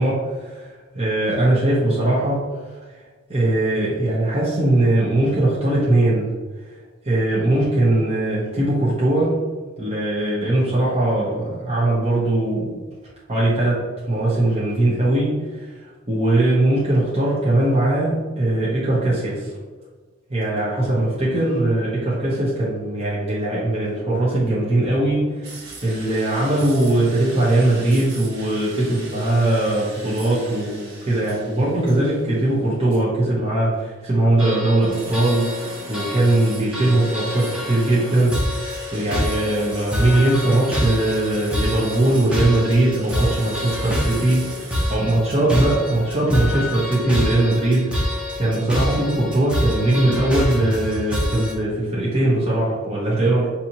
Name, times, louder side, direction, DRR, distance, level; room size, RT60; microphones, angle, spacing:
voice 1, 0.0-2.5 3.3-6.3 7.0-9.4 9.8-12.7 13.3-15.8 16.1-19.5 20.3-53.5, right 1 dB, 30° right, -8 dB, 1.1 m, -20 dB
sound 1, 25.4-32.6 32.9-33.0 34.0-45.0, right 2 dB, 55° right, 1.4 m, -38 dB
sound 2, 34.4-51.5, left 1 dB, 5° right, 0.8 m, -27 dB
6.1 x 2.8 x 2.9 m, 1.4 s
head